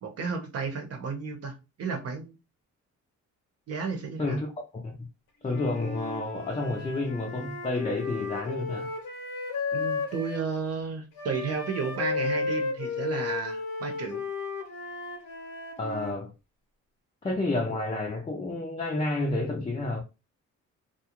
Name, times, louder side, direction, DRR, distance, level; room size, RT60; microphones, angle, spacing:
voice 1, 0.0-2.4 3.7-4.4 9.7-14.2, right 5 dB, 55° right, 0.9 m, -33 dB
Wind instrument woodwind instrument, 5.4-10.5 11.2-16.1, left 4 dB, 80° left, 0.9 m, -34 dB
voice 2, 5.4-8.9 15.8-16.3 17.2-20.0, left 2 dB, 20° left, 0.5 m, -30 dB
2.5 x 2.3 x 2.9 m
cardioid pair, 90°, 30 cm